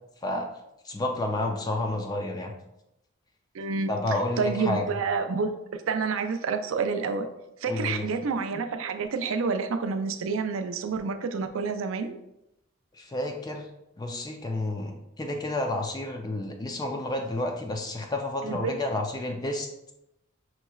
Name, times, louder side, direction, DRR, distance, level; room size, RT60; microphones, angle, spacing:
voice 1, 0.8-2.5 3.9-4.9 7.7-8.1 12.9-13.7 14.0-19.7, left 1 dB, 20° left, 3 dB, 0.4 m, -30 dB
voice 2, 3.5-5.5 5.9-7.3 7.6-12.1 18.4-18.8, right 4 dB, 75° right, 7 dB, 0.4 m, -29 dB
5.6 x 3.0 x 2.3 m, 0.86 s
head